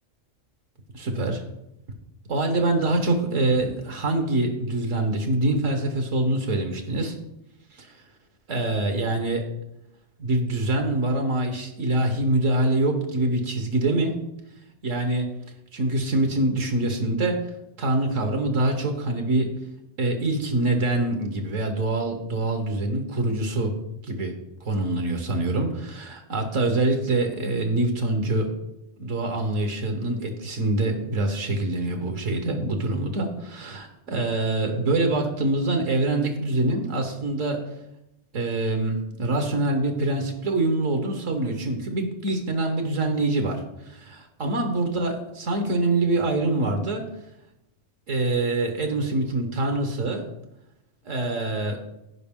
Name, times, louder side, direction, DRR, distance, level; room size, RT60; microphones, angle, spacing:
voice 1, 0.9-1.4 2.3-7.2 8.5-9.5 10.2-14.2 14.8-15.3 15.7-17.4 17.8-19.5 20.0-23.7 24.0-24.3 24.6-28.5 29.0-37.6 38.3-47.1 48.1-50.2 51.0-51.8, right 2 dB, 75° right, 5 dB, 1.5 m, -25 dB
15.5 x 5.2 x 3.6 m, 0.87 s
omnidirectional pair, 1.3 m